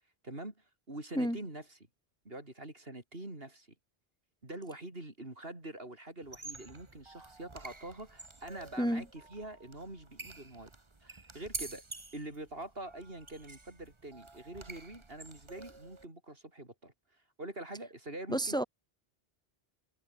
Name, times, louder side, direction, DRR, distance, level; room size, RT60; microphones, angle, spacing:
voice 1, 0.2-1.8 2.3-3.7 4.4-10.7 11.0-11.8 12.1-16.9 17.4-18.6, right 1 dB, 70° right, 5.6 m, -45 dB
sound 1, 6.2-16.0, right 3 dB, 30° right, 1.5 m, -48 dB
voice 2, 18.3-18.6, equal, 5° left, 2.0 m, -30 dB
omnidirectional pair, 1.0 m